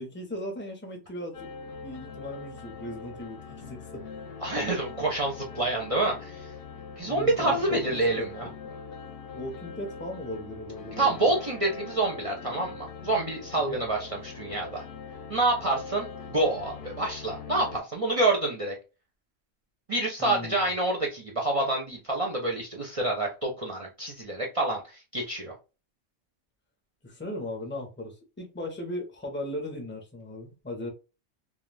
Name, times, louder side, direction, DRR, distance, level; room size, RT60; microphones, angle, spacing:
voice 1, 0.0-1.5 1.8-4.1 7.1-8.3 8.6-8.8 9.3-11.3 13.5-13.8 20.2-20.6 27.0-30.9, left 1 dB, 15° left, 0.4 m, -37 dB
sound 1, 1.3-17.8, left 5 dB, 60° left, 0.7 m, -42 dB
voice 2, 4.4-6.5 7.0-8.5 11.0-14.8 15.3-18.7 19.9-25.5, right 2 dB, 45° right, 0.4 m, -27 dB
2.3 x 2.2 x 3.2 m
omnidirectional pair, 1.3 m